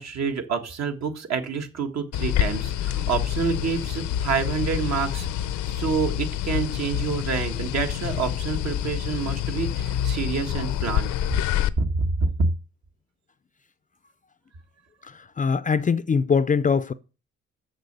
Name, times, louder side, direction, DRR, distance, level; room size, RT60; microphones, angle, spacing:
voice 1, 0.0-5.3 5.7-11.1 11.8-12.5, right 5 dB, 60° right, 1.7 m, -27 dB
sound 1, 2.1-11.7, left 11 dB, 80° left, 0.7 m, -27 dB
voice 2, 15.0-16.9, left 5 dB, 25° left, 0.5 m, -22 dB
6.8 x 6.6 x 6.8 m
cardioid pair, 90°, 30 cm